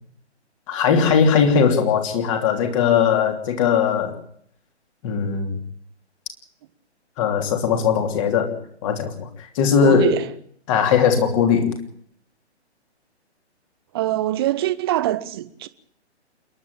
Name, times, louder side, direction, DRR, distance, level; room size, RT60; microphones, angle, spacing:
voice 1, 0.7-4.2 5.0-5.6 7.2-8.6 8.8-9.3 9.5-10.2 10.7-11.7, left 7 dB, 30° left, 3.2 m, -19 dB
voice 2, 9.8-10.3 13.9-15.7, right 14 dB, 20° right, 0.8 m, -23 dB
27.5 x 11.0 x 8.8 m
figure-of-eight pair, 130°, 34 cm